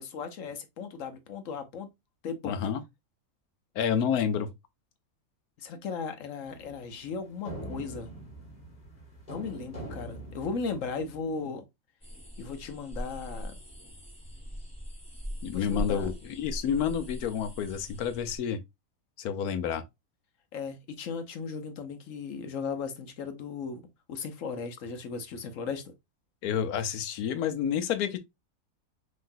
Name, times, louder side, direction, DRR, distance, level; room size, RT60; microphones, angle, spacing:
voice 1, 0.0-1.9 2.2-2.6 5.6-8.1 9.3-11.6 12.4-13.5 15.5-16.1 20.5-23.8 24.1-25.9, left 5 dB, 65° left, 1.1 m, -36 dB
voice 2, 2.4-2.8 3.7-4.5 15.4-18.6 19.2-19.8 26.4-28.2, left 8 dB, 90° left, 1.2 m, -29 dB
sound 1, 6.5-11.3, right 1 dB, 30° left, 1.6 m, -43 dB
sound 2, 12.0-18.4, equal, 5° left, 1.4 m, -40 dB
5.7 x 3.1 x 2.6 m
omnidirectional pair, 1.5 m